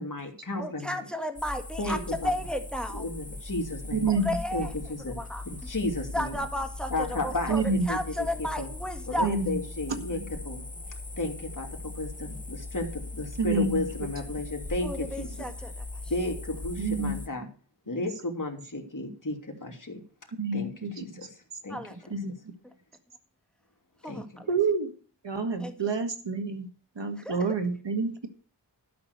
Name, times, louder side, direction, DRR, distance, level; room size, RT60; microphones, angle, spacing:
voice 1, 0.0-1.0 1.8-2.3 2.9-4.1 4.5-5.2 5.4-6.4 6.9-8.7 9.1-10.6 11.2-15.3 16.1-17.5 17.9-20.0 20.5-21.3 21.6-21.8 22.1-22.2 24.1-24.2, left 2 dB, 45° left, 1 dB, 2.8 m, -33 dB
voice 2, 0.6-3.1 4.1-4.7 5.2-5.4 6.1-9.3 14.8-15.8 21.7-22.0 24.0-24.5 25.6-25.7 27.2-27.5, left 1 dB, ahead, 7 dB, 1.8 m, -33 dB
sound 1, 1.4-17.3, left 2 dB, 20° left, 1.1 m, -39 dB
voice 3, 3.9-4.4 7.5-7.9 9.2-9.6 10.0-10.2 13.4-13.8 16.8-17.2 18.0-18.1 20.4-21.1 22.1-22.5 24.5-24.9 25.2-26.7 27.0-28.3, right 4 dB, 75° right, 7 dB, 1.9 m, -28 dB
12.0 x 6.0 x 8.2 m, 0.40 s
wide cardioid pair, 50°, 44 cm